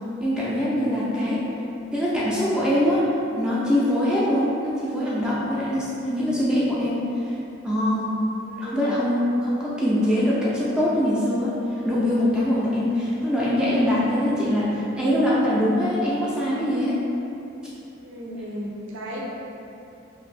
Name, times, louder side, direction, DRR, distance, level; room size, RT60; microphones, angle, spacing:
voice 1, 0.2-1.4 1.9-7.3 7.6-8.1 8.6-17.0, left 1 dB, 5° right, -8 dB, 0.4 m, -23 dB
voice 2, 8.5-8.9 18.0-19.2, equal, 80° right, -3 dB, 0.5 m, -35 dB
2.7 x 2.5 x 3.2 m, 2.8 s
head